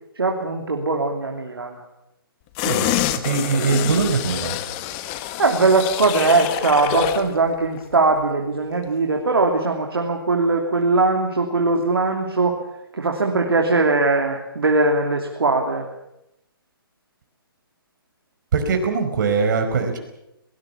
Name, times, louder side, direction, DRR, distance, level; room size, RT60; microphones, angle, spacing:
voice 1, 0.2-1.8 5.4-12.6 12.9-15.9, right 3 dB, 80° right, 2 dB, 3.0 m, -20 dB
sound 1, 2.6-7.3 7.7-7.8, left 13 dB, 30° left, 1.4 m, -26 dB
voice 2, 3.2-4.6 18.5-20.0, right 5 dB, 55° right, 5 dB, 4.9 m, -21 dB
22.5 x 19.5 x 7.3 m, 0.87 s
figure-of-eight pair, 135°, 12 cm